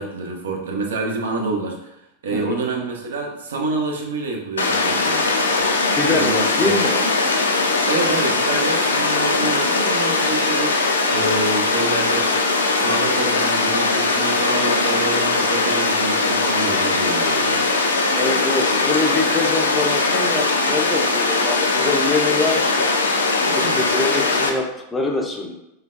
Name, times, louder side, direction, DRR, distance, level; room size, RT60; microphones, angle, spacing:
voice 1, 0.0-2.0 2.2-5.3 6.1-6.9 7.9-12.4 12.7-17.6 23.4-23.8, right 3 dB, 65° right, 1 dB, 0.5 m, -27 dB
voice 2, 2.3-2.6 5.9-7.1 18.1-22.9 23.5-25.5, left 3 dB, 10° left, 0 dB, 0.5 m, -24 dB
Water, 4.6-24.5, left 3 dB, 70° left, 0.3 m, -20 dB
3.4 x 2.2 x 2.2 m, 0.86 s
figure-of-eight pair, 90°, 0 cm